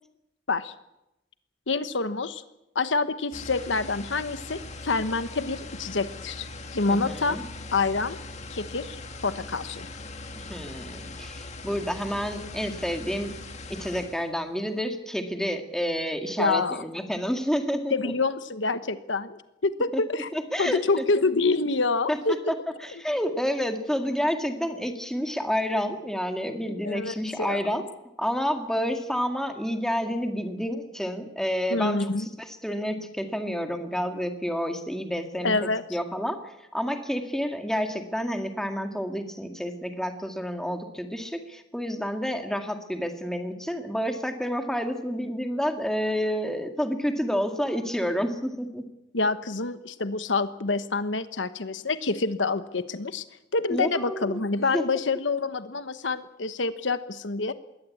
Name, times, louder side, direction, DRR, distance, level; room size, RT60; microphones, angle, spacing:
voice 1, 1.7-2.4 2.7-7.4 7.7-8.2 8.5-9.9 16.4-16.8 17.9-20.3 20.6-22.4 26.8-27.6 31.7-32.3 35.4-35.8 49.1-53.2 53.5-57.5, left 3 dB, 80° left, 12 dB, 1.1 m, -27 dB
sound 1, 3.3-14.3, left 2 dB, 40° left, 2.1 m, -40 dB
voice 2, 6.9-7.4 10.4-13.4 13.7-18.1 19.9-20.0 20.3-21.1 22.1-22.6 22.8-27.8 28.2-48.9 53.7-54.4 54.7-54.8, equal, 5° left, 5 dB, 2.0 m, -29 dB
21.5 x 17.5 x 8.6 m, 0.91 s
head